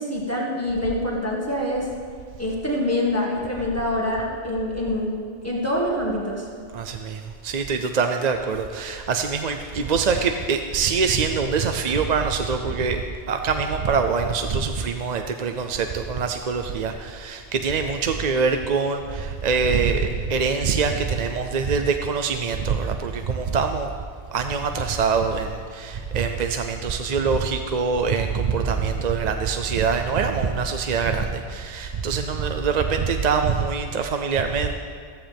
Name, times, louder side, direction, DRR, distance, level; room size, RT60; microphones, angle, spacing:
voice 1, 0.0-1.9 2.4-5.1 5.4-6.5, left 1 dB, 15° left, -4 dB, 1.8 m, -25 dB
voice 2, 6.7-23.9 24.3-34.7, right 5 dB, 45° right, 6 dB, 0.6 m, -24 dB
15.0 x 14.5 x 3.5 m, 2.1 s
omnidirectional pair, 1.2 m